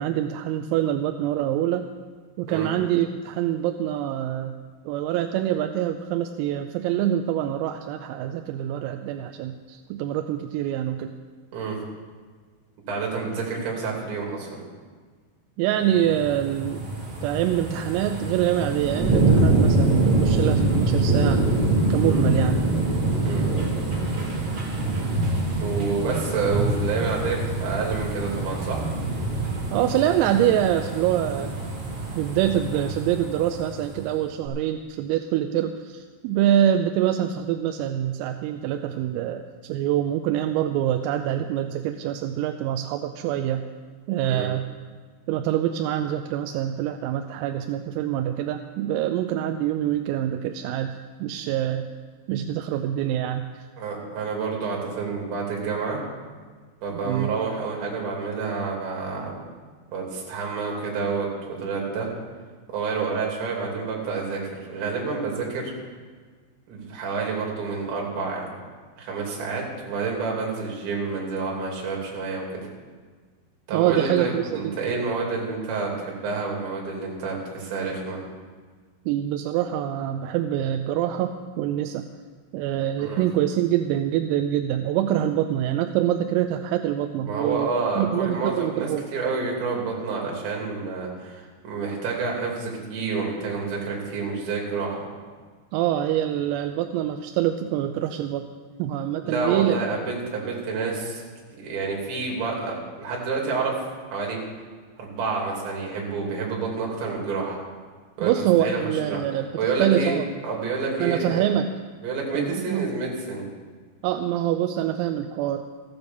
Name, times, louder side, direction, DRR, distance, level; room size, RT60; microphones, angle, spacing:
voice 1, 0.0-1.9 2.4-4.5 4.9-11.1 15.6-16.8 17.2-21.4 21.9-22.6 29.7-31.6 32.2-43.6 44.1-44.7 45.3-51.9 52.3-53.7 57.1-57.3 73.7-74.8 79.1-82.0 82.5-89.1 95.7-98.4 98.8-99.8 108.2-109.5 109.8-110.3 111.0-111.7 112.3-112.9 114.0-115.6, right 11 dB, 85° right, 7 dB, 3.3 m, -25 dB
voice 2, 12.9-14.6 22.0-22.3 23.3-23.4 25.6-28.9 44.3-44.5 53.8-56.0 56.8-59.4 59.9-62.1 62.7-65.7 66.7-68.5 69.0-72.6 73.7-78.2 83.0-83.2 87.2-95.1 99.2-101.2 101.6-103.8 104.1-104.4 105.0-107.6 108.2-109.2 109.6-110.2 110.4-111.5 112.0-113.5, right 4 dB, 60° right, -2 dB, 4.9 m, -29 dB
sound 1, 15.9-34.0 34.4-34.5, right 2 dB, 35° right, 2.5 m, -25 dB
14.5 x 9.7 x 7.0 m, 1.5 s
omnidirectional pair, 6.0 m